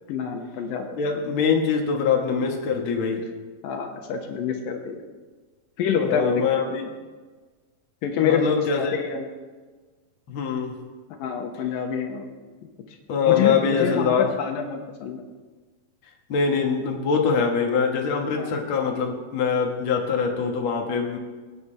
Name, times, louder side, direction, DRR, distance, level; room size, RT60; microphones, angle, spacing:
voice 1, 0.1-1.2 3.6-5.0 5.8-6.9 8.0-9.3 11.2-12.3 13.2-15.2 18.3-18.5, left 6 dB, 80° left, 3 dB, 2.8 m, -27 dB
voice 2, 1.0-3.2 6.0-6.8 8.2-9.0 10.3-10.8 13.1-14.3 16.3-21.2, left 6 dB, 50° left, 1 dB, 1.8 m, -23 dB
22.5 x 9.5 x 3.4 m, 1.4 s
omnidirectional pair, 4.0 m